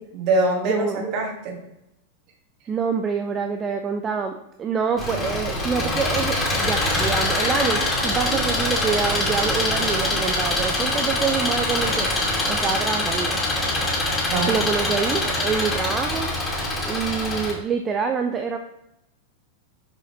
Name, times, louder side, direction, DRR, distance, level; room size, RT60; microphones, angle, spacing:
voice 1, 0.1-1.6 8.3-8.4 14.3-14.5 15.2-15.5, right 2 dB, 40° right, 1 dB, 1.7 m, -24 dB
voice 2, 0.7-1.0 2.7-13.9 14.5-16.3 16.8-18.6, right 6 dB, 25° right, 5 dB, 0.5 m, -26 dB
Engine, 5.0-17.5, left 1 dB, 15° left, 2.5 m, -24 dB
6.6 x 4.9 x 4.3 m, 0.85 s
figure-of-eight pair, 90°, 0 cm